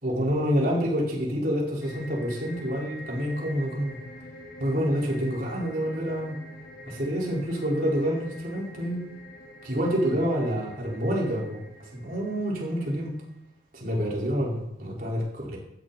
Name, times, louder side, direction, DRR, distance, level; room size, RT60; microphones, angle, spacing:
voice 1, 0.0-4.0 4.6-6.3 6.9-9.0 9.6-11.6 11.9-13.1 13.7-15.6, equal, 50° right, -3 dB, 4.9 m, -27 dB
sound 1, 1.8-13.3, left 1 dB, 55° left, 3.6 m, -46 dB
16.0 x 12.5 x 4.3 m, 0.81 s
head